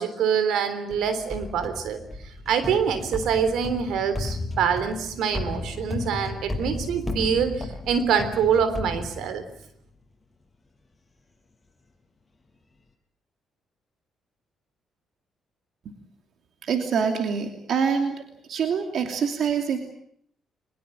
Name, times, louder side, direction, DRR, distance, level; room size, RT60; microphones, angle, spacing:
voice 1, 0.0-2.0 2.4-9.4, right 7 dB, 80° right, 11 dB, 3.5 m, -25 dB
sound 1, 0.9-9.7, left 2 dB, 15° left, 6.5 m, -34 dB
voice 2, 16.6-18.2 18.5-19.8, right 6 dB, 65° right, 5 dB, 2.7 m, -25 dB
22.5 x 21.0 x 8.7 m, 0.68 s
cardioid pair, 90°, 0 cm